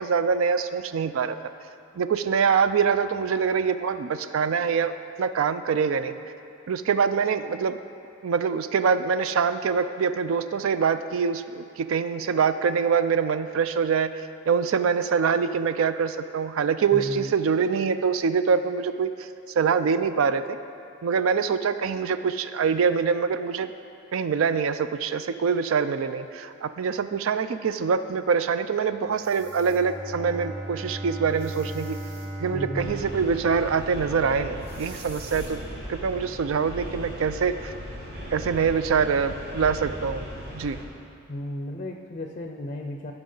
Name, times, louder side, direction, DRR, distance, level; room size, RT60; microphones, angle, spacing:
voice 1, 0.0-1.4 2.0-6.1 6.7-7.8 8.2-14.1 14.5-19.3 19.6-20.6 21.0-23.7 24.1-32.0 32.4-35.6 35.9-37.7 38.3-40.3 40.5-40.8, right 6 dB, 65° right, 11 dB, 0.4 m, -24 dB
voice 2, 16.9-17.3 32.5-33.0 41.3-43.1, left 1 dB, 30° left, 3 dB, 0.5 m, -34 dB
sound 1, 29.1-29.8 31.3-32.3 34.6-35.5, right 2 dB, 30° right, 1.6 m, -49 dB
Bowed string instrument, 29.4-34.3, right 1 dB, 5° right, 1.1 m, -37 dB
sound 2, 32.8-40.8, equal, 50° right, 1.9 m, -38 dB
15.5 x 6.0 x 3.8 m, 2.6 s
head